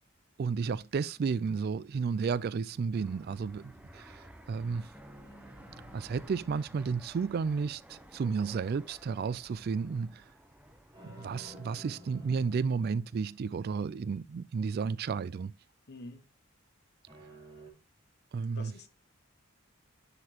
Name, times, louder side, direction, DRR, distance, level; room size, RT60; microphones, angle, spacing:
voice 1, 0.4-4.9 5.9-10.2 11.0-15.5 18.3-18.7, right 5 dB, 50° right, 0.3 m, -32 dB
sound 1, 1.1-2.3 4.9-7.6 10.9-13.6 17.1-17.7, equal, 25° right, 4.0 m, -54 dB
Fixed-wing aircraft airplane, 2.9-11.6, right 1 dB, 5° right, 0.7 m, -54 dB
voice 2, 15.9-16.2 18.5-18.9, left 2 dB, 55° left, 1.2 m, -46 dB
9.8 x 6.8 x 2.9 m
head